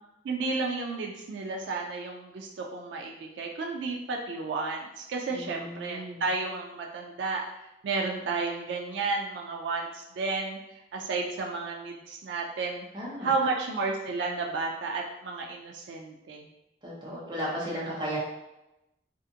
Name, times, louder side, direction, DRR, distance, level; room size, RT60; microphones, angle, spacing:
voice 1, 0.2-7.5 7.8-12.9 13.2-16.5, right 3 dB, 85° right, 1 dB, 0.3 m, -32 dB
voice 2, 5.3-6.2 12.9-13.3 16.8-18.2, equal, 25° right, -6 dB, 0.7 m, -35 dB
2.5 x 2.4 x 2.6 m, 0.92 s
head